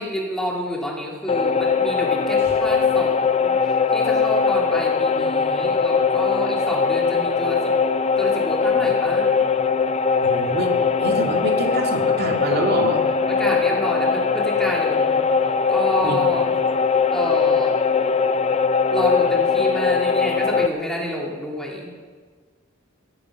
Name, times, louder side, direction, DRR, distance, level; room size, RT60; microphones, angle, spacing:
voice 1, 0.0-7.7 8.2-9.3 13.3-15.3 15.7-16.5 17.1-17.8 18.9-21.9, equal, 5° left, -2 dB, 2.8 m, -29 dB
sound 1, 1.3-20.7, left 5 dB, 30° left, 0.5 m, -20 dB
voice 2, 10.2-10.7 11.0-13.0 16.0-16.2, right 2 dB, 45° right, 2 dB, 2.3 m, -26 dB
16.0 x 14.5 x 6.1 m, 1.5 s
head